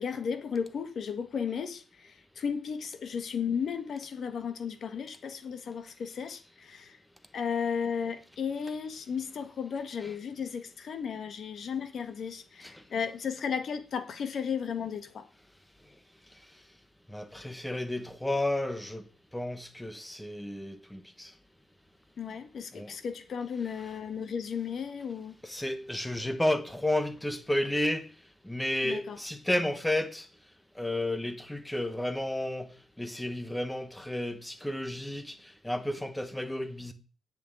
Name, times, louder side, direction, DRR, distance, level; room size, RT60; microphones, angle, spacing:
voice 1, 0.0-7.0 7.3-15.3 22.2-25.3 28.8-29.2, left 6 dB, 45° left, 1.6 m, -34 dB
voice 2, 17.1-19.0 19.3-21.3 22.7-22.9 25.4-28.1 28.4-30.3 30.8-32.7 33.0-36.9, left 1 dB, 5° left, 1.1 m, -32 dB
8.5 x 7.4 x 8.9 m
wide cardioid pair, 170°, 0 cm